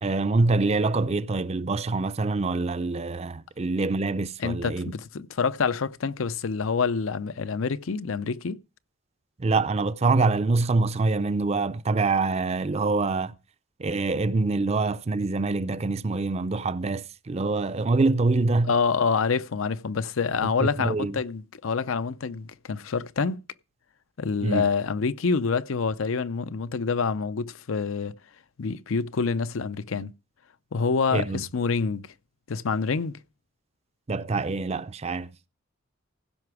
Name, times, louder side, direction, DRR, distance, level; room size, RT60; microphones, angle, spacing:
voice 1, 0.0-4.9 9.4-13.3 13.8-18.7 20.8-21.2 24.4-24.6 31.1-31.4 34.1-35.3, right 3 dB, 30° right, 0.4 m, -25 dB
voice 2, 4.4-8.6 18.7-23.4 24.2-28.1 28.6-30.1 30.7-32.1 32.5-33.1, left 5 dB, 80° left, 0.6 m, -27 dB
16.0 x 5.8 x 4.8 m
head